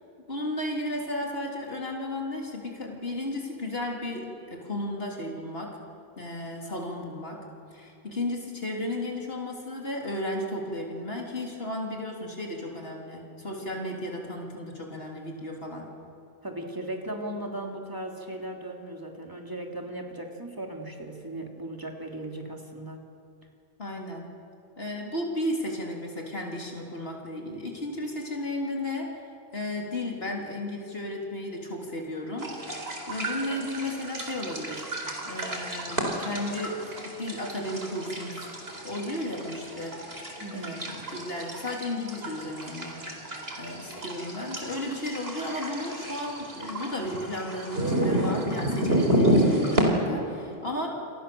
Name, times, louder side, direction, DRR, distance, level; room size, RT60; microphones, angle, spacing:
voice 1, 0.3-5.8 6.2-7.4 7.7-15.9 23.8-24.3 24.8-29.2 29.5-32.8 33.1-34.8 35.2-38.5 38.8-40.0 40.5-43.2 43.6-50.9, left 1 dB, 70° left, 0 dB, 3.8 m, -34 dB
voice 2, 16.4-23.0 40.4-40.9, right 1 dB, 20° right, 1 dB, 3.3 m, -37 dB
sound 1, 32.4-49.8, right 1 dB, 70° right, 4.4 m, -30 dB
29.5 x 26.5 x 7.1 m, 2.5 s
omnidirectional pair, 1.0 m